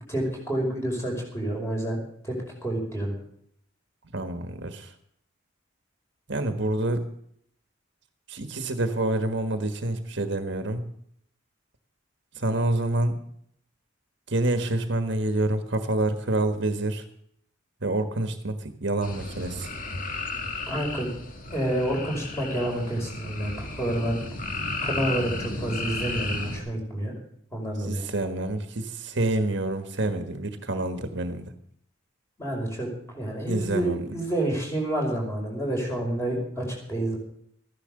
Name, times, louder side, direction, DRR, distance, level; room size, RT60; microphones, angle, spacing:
voice 1, 0.1-2.0 2.2-2.4 2.6-3.2 20.7-21.1 21.5-24.2 24.8-27.1 27.5-28.1 32.4-32.9 33.1-37.2, right 1 dB, 15° left, -1 dB, 5.3 m, -29 dB
voice 2, 4.1-4.9 6.3-7.0 8.3-10.8 12.3-13.2 14.3-17.0 17.8-19.7 27.8-31.5 33.5-34.0, right 2 dB, 60° right, 8 dB, 1.5 m, -27 dB
sound 1, 19.0-26.6, left 2 dB, 45° left, 1.9 m, -34 dB
14.5 x 11.0 x 6.6 m, 0.69 s
head